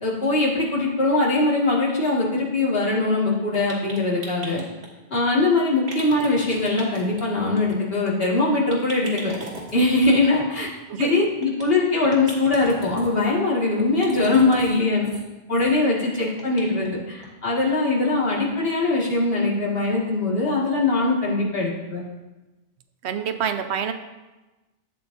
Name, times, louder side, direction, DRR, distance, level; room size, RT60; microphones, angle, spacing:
voice 1, 0.0-4.6 5.1-9.3 9.7-10.7 11.0-15.1 15.5-22.0, left 2 dB, 65° left, -4 dB, 2.1 m, -21 dB
sound 1, 3.5-4.9 5.9-7.2 7.5-7.8 8.0-8.1 8.4-8.5 8.7-10.1 11.0-11.6 12.0-13.1 13.8-14.8 15.0-15.2 15.5-15.7 16.0-16.9 17.2-17.3 17.7-17.8, right 2 dB, 70° right, 1.9 m, -38 dB
voice 2, 23.0-23.9, right 8 dB, 85° right, 9 dB, 0.9 m, -26 dB
12.5 x 8.0 x 2.6 m, 1.1 s
omnidirectional pair, 1.1 m